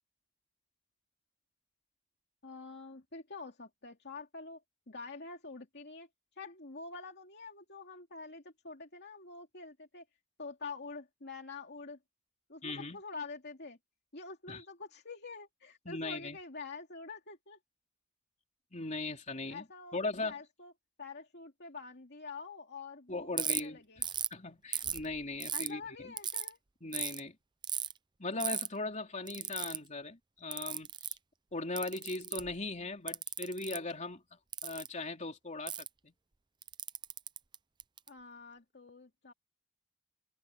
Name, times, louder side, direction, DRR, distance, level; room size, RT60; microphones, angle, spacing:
voice 1, 2.4-4.6 4.9-6.1 6.4-10.0 10.4-12.0 12.5-13.8 14.1-17.6 19.5-20.7 21.0-24.0 25.5-26.6 38.1-39.3, left 4 dB, 50° left, 2.8 m, -46 dB
voice 2, 12.6-13.0 14.5-14.6 15.9-16.4 18.7-19.6 19.9-20.4 23.1-23.8 24.3-26.1 26.8-27.4 28.2-31.2 31.5-34.2 34.6-36.1, left 2 dB, 30° left, 3.6 m, -39 dB
Ratchet pawl, 23.4-23.6 24.0-24.3 24.7-25.7 26.2-26.5 26.9-27.2 27.6-27.9 28.4-28.7 29.3-29.8 30.5-31.2 31.8-32.5 33.1-33.8 34.5-34.9 35.7-35.9 36.6-38.1, right 9 dB, 20° right, 0.5 m, -36 dB
head